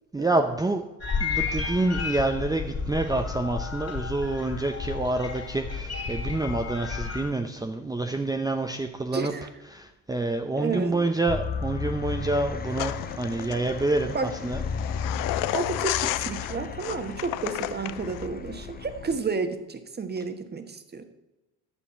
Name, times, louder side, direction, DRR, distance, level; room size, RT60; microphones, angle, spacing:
voice 1, 0.1-0.8 1.2-9.3 9.7-14.2 14.4-14.6, right 2 dB, 10° right, 4 dB, 0.8 m, -27 dB
sound 1, 1.0-7.3, left 5 dB, 40° left, 3.0 m, -32 dB
voice 2, 9.1-9.5 10.6-11.1 14.1-14.3 15.5-21.0, right 4 dB, 25° right, 8 dB, 1.3 m, -31 dB
sound 2, 11.3-19.2, left 5 dB, 25° left, 0.9 m, -35 dB
sound 3, 12.7-18.3, left 15 dB, 55° left, 0.5 m, -32 dB
10.0 x 6.9 x 5.7 m, 1.0 s
hypercardioid pair, 65°, 39 cm